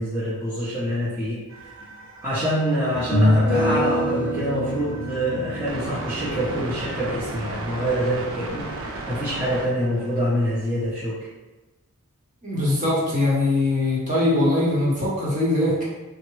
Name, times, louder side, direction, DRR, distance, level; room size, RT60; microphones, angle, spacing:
voice 1, 0.0-1.4 2.2-11.3, equal, 10° right, -11 dB, 0.6 m, -26 dB
sound 1, 1.5-10.4, right 2 dB, 60° right, 0.4 m, -36 dB
sound 2, 1.8-1.9 2.9-8.2, equal, 45° left, 0.6 m, -26 dB
voice 2, 12.4-15.8, left 2 dB, 35° right, -6 dB, 0.9 m, -21 dB
3.4 x 2.0 x 3.1 m, 1.1 s
head